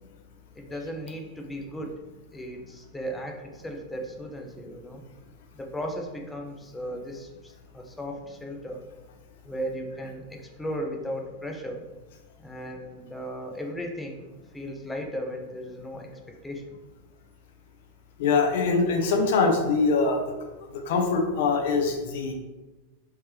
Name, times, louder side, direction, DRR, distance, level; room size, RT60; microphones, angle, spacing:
voice 1, 0.6-2.0 2.3-5.0 5.5-8.9 9.4-11.8 12.4-14.2 14.5-16.1 16.4-16.6, equal, 10° left, 2 dB, 0.5 m, -36 dB
voice 2, 18.2-20.2 20.7-22.3, left 4 dB, 55° left, 3 dB, 0.6 m, -23 dB
3.3 x 3.2 x 3.1 m, 1.1 s
figure-of-eight pair, 90°, 0 cm